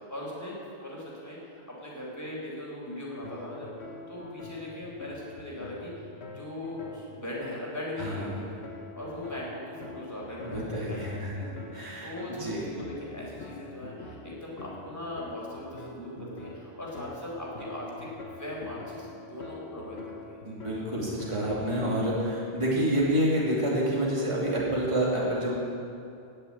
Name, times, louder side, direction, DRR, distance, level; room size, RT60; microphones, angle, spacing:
voice 1, 0.0-5.9 6.3-8.6 8.9-11.0 11.3-20.4, left 1 dB, 15° left, -5 dB, 4.3 m, -39 dB
sound 1, 3.2-22.3, left 3 dB, 75° left, 1.5 m, -45 dB
voice 2, 8.0-8.3 10.4-12.1 12.4-12.6 20.4-25.6, right 1 dB, 30° right, -6 dB, 2.7 m, -28 dB
18.5 x 6.9 x 8.7 m, 2.5 s
omnidirectional pair, 1.1 m